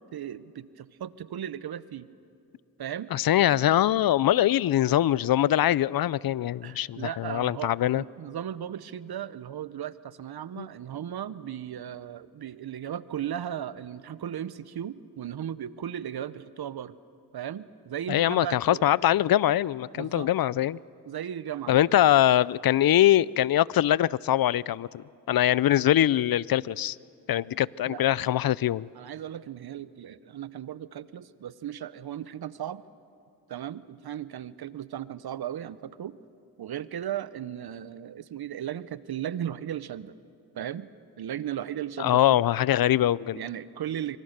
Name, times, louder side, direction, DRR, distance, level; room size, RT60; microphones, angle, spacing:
voice 1, 0.1-2.1 2.8-3.1 3.6-3.7 6.6-16.9 17.3-18.9 19.9-20.3 21.1-22.0 27.9-28.0 28.9-32.8 33.5-36.2 36.6-40.2 40.5-40.9 41.2-42.4 43.3-44.2, right 10 dB, 70° right, 0.9 m, -36 dB
voice 2, 3.1-8.0 10.6-10.7 18.1-20.8 21.7-27.0 27.3-28.9 42.0-43.4, left 12 dB, 60° left, 0.5 m, -23 dB
25.5 x 25.0 x 6.6 m
cardioid pair, 55°, 40 cm